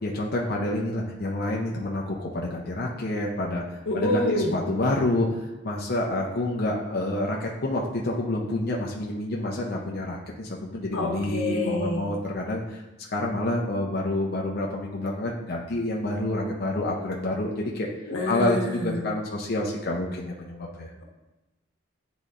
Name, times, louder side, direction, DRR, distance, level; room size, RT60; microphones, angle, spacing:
voice 1, 0.0-3.6 3.9-17.9 18.2-20.9, left 1 dB, 45° left, -2 dB, 0.6 m, -28 dB
voice 2, 3.9-4.6 10.9-12.0 18.1-19.0, left 1 dB, 85° left, -1 dB, 1.3 m, -27 dB
9.8 x 4.0 x 2.5 m, 1.0 s
head